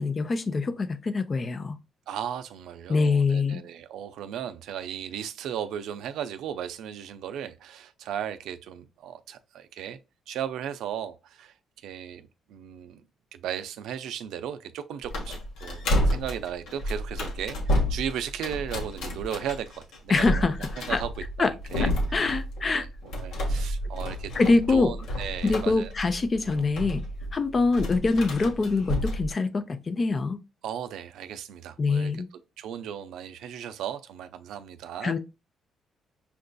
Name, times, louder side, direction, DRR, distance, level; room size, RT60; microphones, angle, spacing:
voice 1, 0.0-1.8 2.9-3.6 20.1-20.5 20.9-21.0 21.4-21.5 21.8-22.9 24.3-24.9 25.4-27.1 27.3-30.4 31.8-32.3 35.0-35.2, left 3 dB, 35° left, 0.5 m, -24 dB
voice 2, 2.1-10.0 10.3-11.5 11.8-13.0 13.3-20.5 20.9-21.1 21.4-21.9 22.7-25.9 30.6-32.1 32.6-35.2, right 9 dB, 85° right, 0.4 m, -36 dB
sound 1, 15.0-29.3, equal, 85° left, 1.0 m, -30 dB
5.7 x 2.6 x 2.2 m
cardioid pair, 90°, 0 cm